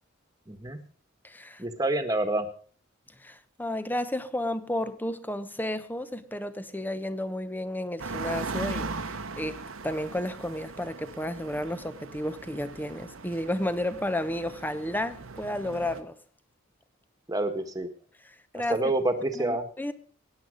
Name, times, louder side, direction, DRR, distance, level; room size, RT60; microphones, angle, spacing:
voice 1, 0.5-0.8 1.6-2.5 17.3-17.9 18.5-19.7, right 2 dB, 20° right, 1.6 m, -28 dB
voice 2, 1.2-1.6 3.2-16.2 18.5-18.8 19.3-19.9, left 1 dB, 10° left, 0.9 m, -32 dB
sound 1, 8.0-16.0, right 3 dB, 90° right, 1.2 m, -39 dB
16.5 x 10.0 x 5.2 m
head